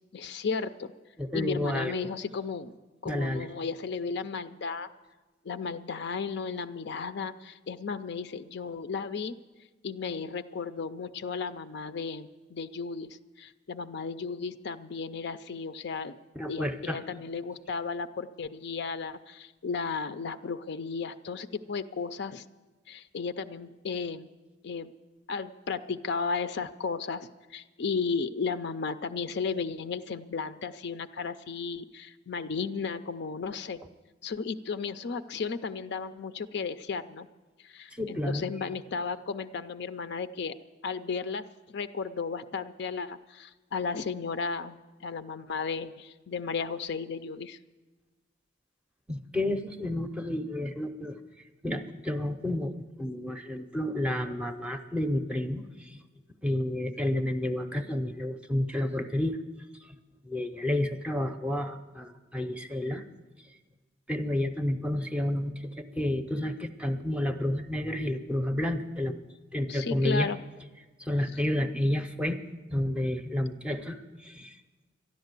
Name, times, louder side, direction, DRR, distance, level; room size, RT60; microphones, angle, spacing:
voice 1, 0.1-0.9 1.3-2.7 3.0-4.9 5.4-9.4 9.8-16.2 16.5-22.4 22.9-24.3 24.6-24.9 25.3-33.8 34.2-37.3 37.6-40.6 40.8-47.6 69.7-70.4, left 5 dB, 60° left, 11 dB, 0.5 m, -34 dB
voice 2, 1.2-2.0 3.1-3.5 16.4-17.0 38.0-38.5 49.1-51.2 51.6-56.0 56.4-59.4 60.3-63.0 64.1-69.2 69.5-70.3 71.0-72.4 72.7-74.0 74.2-74.6, left 1 dB, 5° right, 7 dB, 0.6 m, -30 dB
12.5 x 11.0 x 8.1 m, 1.2 s
head